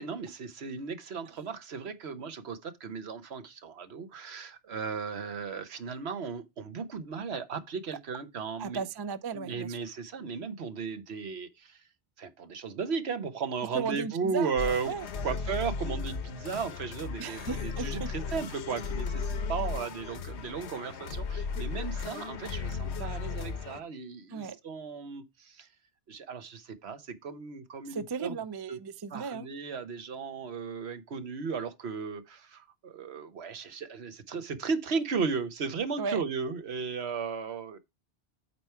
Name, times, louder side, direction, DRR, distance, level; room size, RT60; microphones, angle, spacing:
voice 1, 0.0-8.8 9.3-11.8 12.2-14.9 15.2-25.7 26.1-28.4 28.7-28.8 29.1-37.8, right 5 dB, 70° right, 1.2 m, -35 dB
voice 2, 8.6-9.9 13.7-14.5 14.9-15.1 17.2-18.1 24.3-24.6 27.9-29.5 36.0-36.2, right 5 dB, 40° right, 0.3 m, -35 dB
sound 1, 14.6-23.8, left 5 dB, 75° left, 1.1 m, -35 dB
8.5 x 4.6 x 4.4 m
omnidirectional pair, 1.2 m